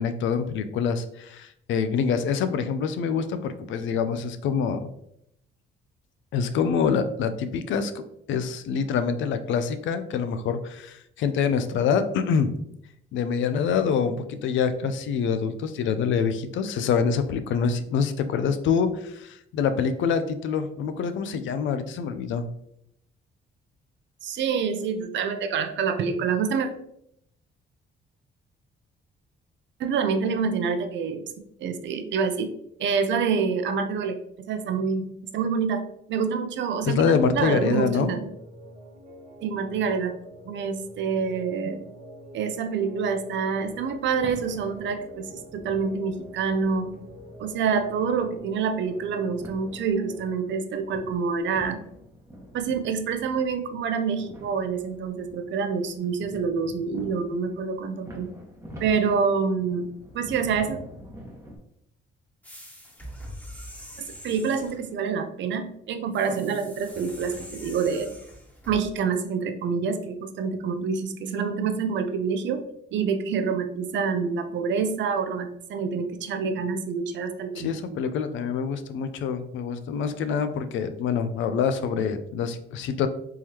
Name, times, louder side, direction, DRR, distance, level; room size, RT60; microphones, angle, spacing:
voice 1, 0.0-4.9 6.3-8.0 8.3-12.5 13.1-22.5 36.8-38.1 77.6-83.1, left 6 dB, 75° left, 10 dB, 0.5 m, -26 dB
voice 2, 24.2-26.7 29.8-31.2 31.6-32.5 32.8-34.2 34.5-35.0 35.3-35.8 36.1-38.2 39.4-40.1 40.5-41.8 42.3-46.9 47.4-51.8 52.5-58.3 58.8-59.9 60.1-60.8 64.0-68.1 68.7-72.6 72.9-77.8, right 5 dB, 70° right, 8 dB, 0.5 m, -27 dB
sound 1, 37.8-50.4, equal, 40° right, 1.1 m, -46 dB
sound 2, 43.4-61.6, equal, 15° right, 1.1 m, -46 dB
sound 3, 62.4-64.8 66.1-68.8, equal, 10° left, 1.3 m, -43 dB
3.7 x 3.0 x 2.8 m, 0.74 s
cardioid pair, 90°, 20 cm